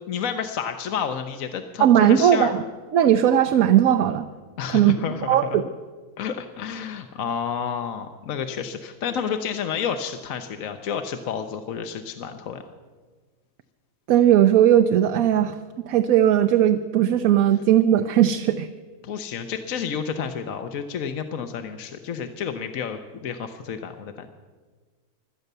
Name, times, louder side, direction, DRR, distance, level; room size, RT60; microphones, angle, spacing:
voice 1, 0.1-2.5 4.6-5.6 6.2-12.6 19.0-24.3, left 7 dB, 65° left, 7 dB, 1.2 m, -30 dB
voice 2, 1.8-2.6 2.9-4.3 4.7-5.0 5.3-5.6 14.1-15.6 15.8-18.7, right 10 dB, 70° right, 8 dB, 1.1 m, -18 dB
17.0 x 12.0 x 6.7 m, 1.4 s
omnidirectional pair, 1.6 m